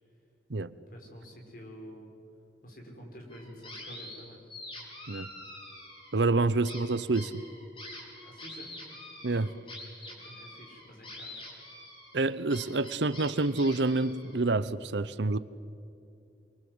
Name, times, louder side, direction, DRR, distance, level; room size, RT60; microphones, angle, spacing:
voice 1, 0.9-2.1 2.6-4.4 8.2-8.8 10.0-11.5, equal, 55° left, 1 dB, 5.7 m, -49 dB
sound 1, 3.3-4.2 4.5-6.3 6.6-14.5, left 1 dB, 30° left, 5.3 m, -46 dB
voice 2, 6.1-7.3 9.2-9.5 12.1-15.4, right 3 dB, 85° right, 16 dB, 0.8 m, -27 dB
28.0 x 23.5 x 8.0 m, 2.7 s
head